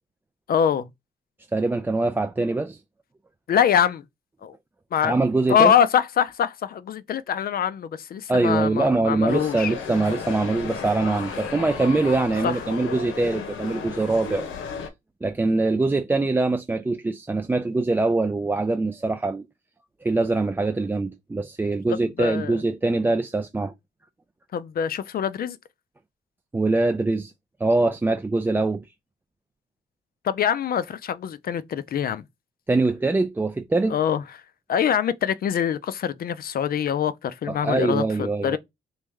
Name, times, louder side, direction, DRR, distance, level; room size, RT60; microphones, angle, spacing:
voice 1, 0.5-0.9 3.5-4.0 4.4-4.5 4.9-5.1 5.5-9.7 12.4-12.6 22.2-22.5 24.5-25.6 30.2-32.3 33.9-34.2 34.7-38.6, left 8 dB, 50° left, 0.5 m, -24 dB
voice 2, 1.5-2.8 5.0-5.7 8.3-14.5 15.2-19.4 20.0-23.7 26.5-27.3 27.6-28.9 32.7-34.0 37.5-38.6, right 3 dB, 10° right, 0.3 m, -23 dB
sound 1, 9.3-14.9, left 6 dB, 80° left, 1.0 m, -34 dB
3.1 x 2.5 x 3.4 m
cardioid pair, 90°, 20 cm